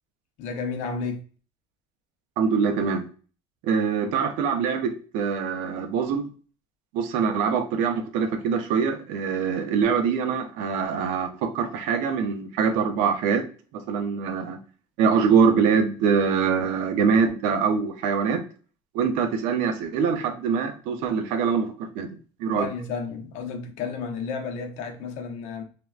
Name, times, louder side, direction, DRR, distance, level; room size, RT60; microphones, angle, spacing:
voice 1, 0.4-1.2 22.6-25.6, left 5 dB, 70° left, 0.6 m, -32 dB
voice 2, 2.4-3.1 3.6-6.3 6.9-13.5 13.7-14.6 15.0-18.4 18.9-22.1 22.4-22.7, right 6 dB, 80° right, 0.5 m, -24 dB
3.3 x 2.1 x 2.4 m
cardioid pair, 135°, 12 cm